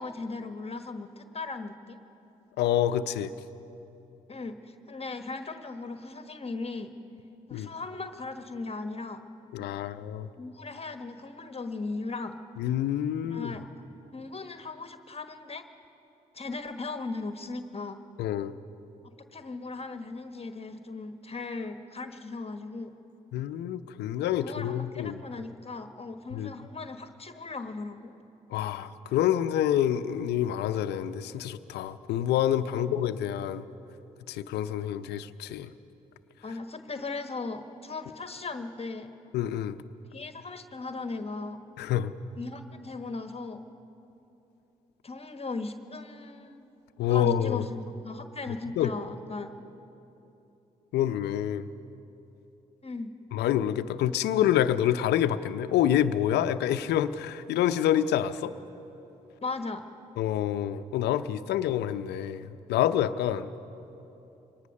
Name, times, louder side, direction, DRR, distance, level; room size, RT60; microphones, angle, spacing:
voice 1, 0.0-2.0 4.3-6.9 7.5-9.2 10.4-12.4 13.2-13.6 14.1-15.7 16.3-18.0 19.3-22.9 24.4-28.1 32.7-32.9 36.4-39.1 40.1-41.6 42.4-43.6 45.0-46.6 47.1-49.6 52.8-53.1 59.4-59.8, left 3 dB, 35° left, 8 dB, 1.3 m, -37 dB
voice 2, 2.6-3.3 7.5-7.7 9.5-10.3 12.6-13.5 18.2-18.6 23.3-25.2 26.3-26.5 28.5-33.6 34.3-35.7 39.3-39.8 41.8-42.1 47.0-47.6 48.8-48.9 50.9-51.7 53.3-58.5 60.2-63.5, left 11 dB, 75° left, 12 dB, 0.7 m, -27 dB
23.5 x 19.0 x 6.5 m, 3.0 s
hypercardioid pair, 45°, 17 cm